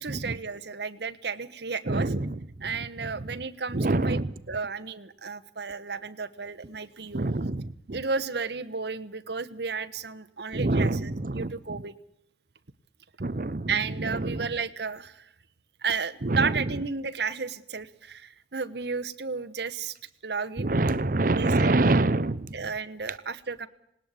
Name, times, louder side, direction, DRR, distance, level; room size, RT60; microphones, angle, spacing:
voice 1, 0.0-2.1 2.6-7.3 7.9-11.9 13.7-15.3 15.8-19.9 20.2-20.7 21.3-22.2 22.5-23.7, right 5 dB, 70° right, 9 dB, 1.2 m, -33 dB
voice 2, 1.9-2.3 2.7-3.1 3.7-4.3 7.1-8.0 10.5-11.5 13.2-14.5 16.2-16.5 20.6-22.6, right 2 dB, 50° right, 15 dB, 0.8 m, -26 dB
19.5 x 19.0 x 8.3 m, 0.78 s
head